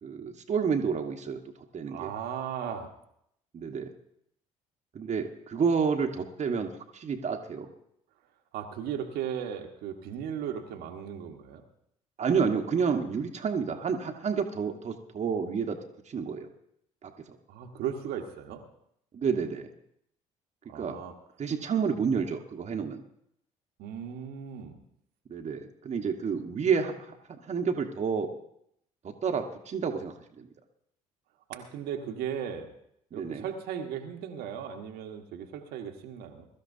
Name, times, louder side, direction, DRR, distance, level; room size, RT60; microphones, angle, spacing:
voice 1, 0.0-1.4 1.7-2.1 3.5-3.9 4.9-7.7 12.2-15.8 16.1-16.5 17.0-17.1 19.1-19.7 20.7-21.0 21.4-23.0 25.3-28.3 29.0-30.5 33.1-33.4, right 6 dB, 40° right, 3 dB, 1.4 m, -30 dB
voice 2, 1.9-2.9 8.5-11.6 17.5-18.6 20.7-21.1 23.8-24.8 31.5-32.7 33.1-36.5, right 8 dB, 65° right, 3 dB, 1.4 m, -36 dB
22.0 x 12.5 x 2.7 m, 0.74 s
hypercardioid pair, 50°, 17 cm